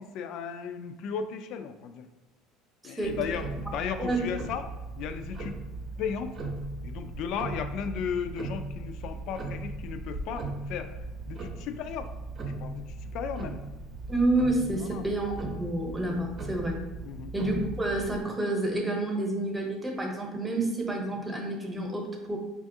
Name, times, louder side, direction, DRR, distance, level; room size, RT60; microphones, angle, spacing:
voice 1, 0.0-2.1 2.8-5.6 6.0-6.4 6.8-12.1 12.5-13.6 14.9-15.0 17.0-17.3, left 7 dB, 60° left, 8 dB, 0.3 m, -35 dB
voice 2, 2.8-3.2 4.0-4.2 14.1-15.3 15.6-16.8 17.3-22.4, right 2 dB, 15° right, 0 dB, 0.9 m, -29 dB
Tick-tock, 3.0-18.3, right 2 dB, 40° right, 0.7 m, -38 dB
5.1 x 2.4 x 2.6 m, 1.1 s
supercardioid pair, 100°, 0 cm